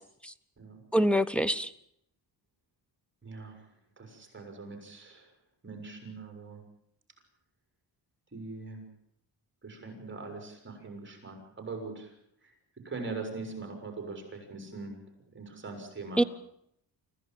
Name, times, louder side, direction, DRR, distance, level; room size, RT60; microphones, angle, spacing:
voice 1, 0.9-1.7 16.2-16.3, equal, 5° left, 15 dB, 0.8 m, -25 dB
voice 2, 3.2-3.7 4.0-5.3 5.6-6.6 8.3-8.8 9.6-12.1 12.4-12.5 12.8-15.0 15.3-16.2, right 3 dB, 30° right, 4 dB, 5.8 m, -41 dB
25.5 x 15.5 x 9.1 m, 0.74 s
wide cardioid pair, 135°, 41 cm